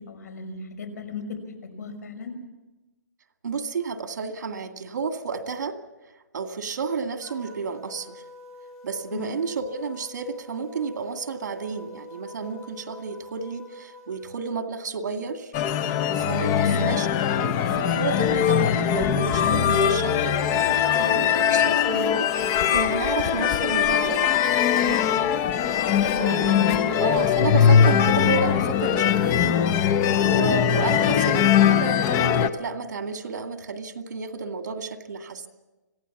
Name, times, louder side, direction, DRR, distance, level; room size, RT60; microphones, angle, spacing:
voice 1, 0.0-2.3 9.1-9.2 16.5-16.8 25.9-26.1 26.5-26.7, left 4 dB, 65° left, 7 dB, 5.6 m, -35 dB
voice 2, 3.4-5.8 6.3-8.2 8.8-15.5 16.1-24.3 24.7-25.0 26.2-29.7 30.2-35.5, right 4 dB, 70° right, 7 dB, 2.2 m, -31 dB
sound 1, 7.2-14.4, left 1 dB, 5° left, 6.4 m, -46 dB
sound 2, 15.5-32.5, left 9 dB, 20° left, 0.7 m, -21 dB
26.0 x 16.5 x 7.2 m, 1.1 s
hypercardioid pair, 165°, 10 cm